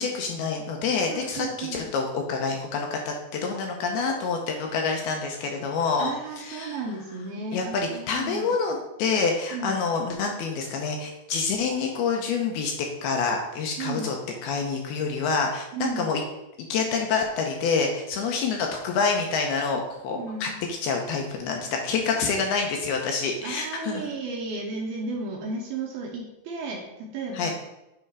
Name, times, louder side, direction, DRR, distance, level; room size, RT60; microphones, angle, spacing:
voice 1, 0.0-6.8 7.5-14.2 14.4-16.2 16.7-24.1 27.3-27.5, left 5 dB, 75° left, 2 dB, 2.5 m, -27 dB
voice 2, 1.1-1.9 6.0-8.5 9.5-9.8 13.8-14.1 15.7-16.1 20.2-20.5 23.4-27.5, right 3 dB, 75° right, 0 dB, 2.3 m, -34 dB
7.9 x 4.3 x 4.8 m, 0.93 s
omnidirectional pair, 5.0 m